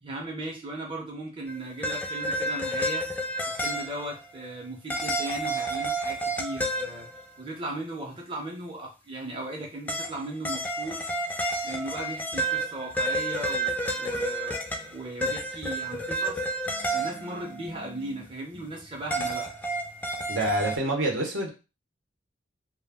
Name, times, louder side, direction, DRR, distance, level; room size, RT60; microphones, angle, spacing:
voice 1, 0.0-7.1 7.4-11.1 11.6-14.6 14.9-16.4 16.9-19.5, right 2 dB, 25° right, -2 dB, 0.7 m, -37 dB
sound 1, 1.5-4.2 4.9-7.4 9.9-18.2 18.5-20.8, right 1 dB, 10° left, 0.3 m, -30 dB
voice 2, 20.3-21.5, right 1 dB, 70° right, 0 dB, 0.8 m, -27 dB
2.3 x 2.1 x 3.4 m, 0.29 s
head